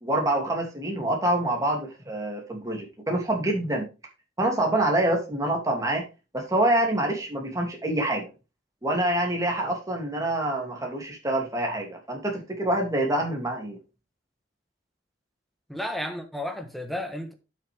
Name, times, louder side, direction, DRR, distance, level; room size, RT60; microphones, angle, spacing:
voice 1, 0.0-3.8 4.4-6.0 6.3-8.3 8.8-13.8, right 1 dB, 20° right, 2.9 m, -26 dB
voice 2, 15.7-17.3, left 1 dB, ahead, 1.3 m, -32 dB
11.0 x 6.4 x 3.6 m
head